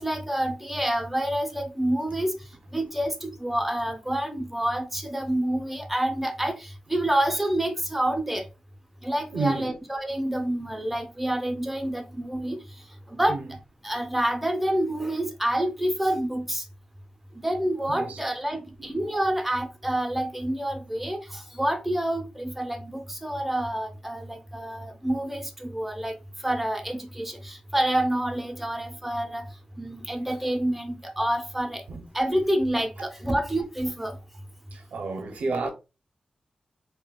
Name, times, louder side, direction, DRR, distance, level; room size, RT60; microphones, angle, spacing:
voice 1, 0.0-2.4 2.7-8.4 9.0-12.6 13.1-13.4 13.8-16.6 17.4-26.2 26.4-29.5 29.8-31.8 32.1-34.2, right 1 dB, 5° right, 0.5 m, -28 dB
voice 2, 9.3-9.7 13.3-13.4 17.9-18.2 18.5-19.2 31.9-32.0 33.0-33.1 34.7-35.7, right 3 dB, 90° right, 0.5 m, -31 dB
3.6 x 2.1 x 2.2 m
wide cardioid pair, 130°, 2 cm